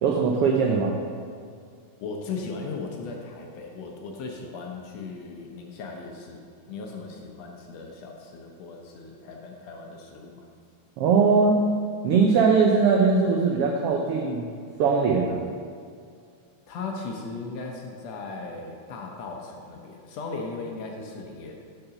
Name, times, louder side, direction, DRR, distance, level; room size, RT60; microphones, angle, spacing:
voice 1, 0.0-1.0 11.0-11.6 12.0-14.5 14.8-15.4, right 5 dB, 85° right, 0 dB, 1.3 m, -20 dB
voice 2, 2.0-6.4 6.7-10.4 16.7-21.5, left 4 dB, 70° left, 1 dB, 1.8 m, -37 dB
6.7 x 5.7 x 5.8 m, 2.3 s
omnidirectional pair, 3.4 m